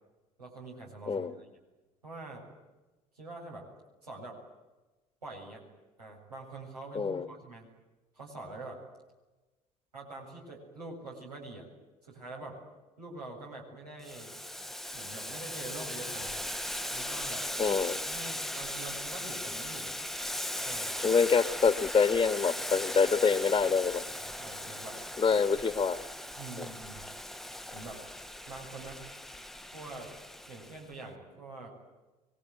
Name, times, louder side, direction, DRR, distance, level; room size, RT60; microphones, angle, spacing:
voice 1, 0.4-1.5 2.0-2.5 3.1-3.7 4.0-4.4 5.2-5.6 6.0-7.7 8.1-8.8 9.9-11.7 12.0-12.6 13.0-14.3 14.9-16.4 16.9-17.4 18.0-19.9 20.6-20.9 24.1-25.0 25.3-25.6 26.4-27.1 27.7-28.0 28.5-29.0 29.7-30.1 30.5-31.7, right 2 dB, 85° right, -2 dB, 7.4 m, -45 dB
Boiling, 14.0-30.8, left 1 dB, ahead, 1.0 m, -38 dB
voice 2, 17.6-18.0 21.0-24.0 25.2-26.0 26.6-26.7, left 5 dB, 25° left, 12 dB, 1.5 m, -26 dB
25.5 x 24.0 x 9.5 m, 1.2 s
figure-of-eight pair, 60°, 20 cm